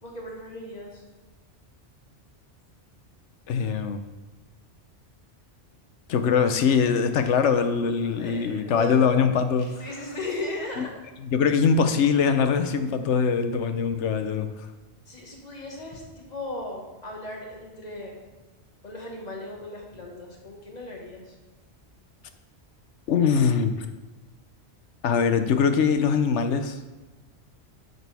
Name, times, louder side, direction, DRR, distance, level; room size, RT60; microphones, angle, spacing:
voice 1, 0.0-1.0 6.1-6.5 8.0-9.1 9.6-10.9 15.1-18.2 18.8-21.4, left 2 dB, 35° left, -1 dB, 1.7 m, -37 dB
voice 2, 3.5-4.0 6.1-9.7 10.8-10.9 11.2-14.5 23.1-23.8 25.0-26.8, left 6 dB, 80° left, 8 dB, 1.0 m, -22 dB
10.5 x 6.7 x 3.5 m, 1.2 s
omnidirectional pair, 1.2 m